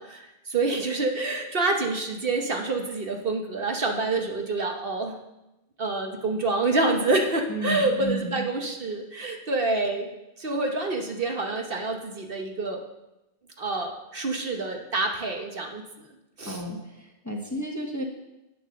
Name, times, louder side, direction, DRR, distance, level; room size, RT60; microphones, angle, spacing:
voice 1, 0.0-5.2 5.8-10.1 10.4-12.8 13.6-15.8 16.4-16.6, right 3 dB, 55° right, 3 dB, 1.2 m, -27 dB
voice 2, 7.5-8.5 16.5-18.0, equal, 15° left, 0 dB, 1.2 m, -32 dB
8.7 x 7.7 x 6.5 m, 0.94 s
omnidirectional pair, 1.2 m